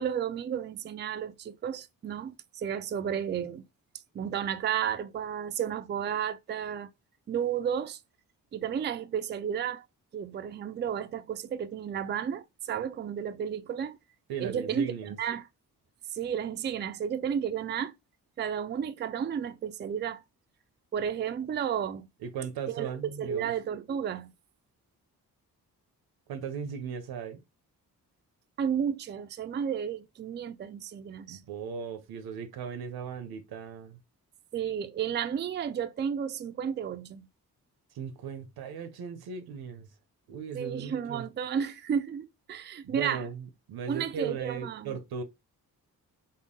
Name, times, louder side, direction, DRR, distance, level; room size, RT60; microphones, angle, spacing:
voice 1, 0.0-3.6 4.1-6.9 7.3-8.0 8.5-9.8 10.1-14.0 14.4-14.9 15.2-15.4 16.1-17.9 18.4-20.2 20.9-22.1 22.7-22.9 23.2-24.3 28.6-31.4 34.5-37.3 40.5-43.2 43.9-45.0, right 8 dB, 30° right, 0.4 m, -32 dB
voice 2, 14.3-15.2 22.2-23.5 26.3-27.4 31.3-34.0 37.9-39.9 40.3-41.3 42.8-45.2, right 6 dB, 85° right, 0.7 m, -37 dB
3.6 x 2.0 x 3.7 m
cardioid pair, 65°, 36 cm